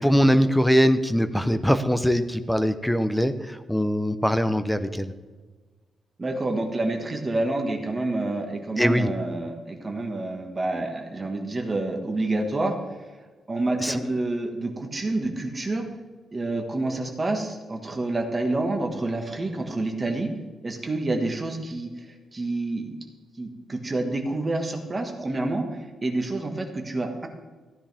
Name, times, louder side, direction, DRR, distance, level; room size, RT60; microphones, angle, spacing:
voice 1, 0.0-5.1 8.8-9.1 13.8-14.0, equal, ahead, 10 dB, 0.6 m, -22 dB
voice 2, 6.2-12.7 13.5-15.8 16.3-20.3 20.6-22.1 22.3-22.9 23.4-27.3, right 2 dB, 25° right, 3 dB, 1.6 m, -28 dB
15.0 x 10.0 x 3.5 m, 1.3 s
wide cardioid pair, 145°, 0 cm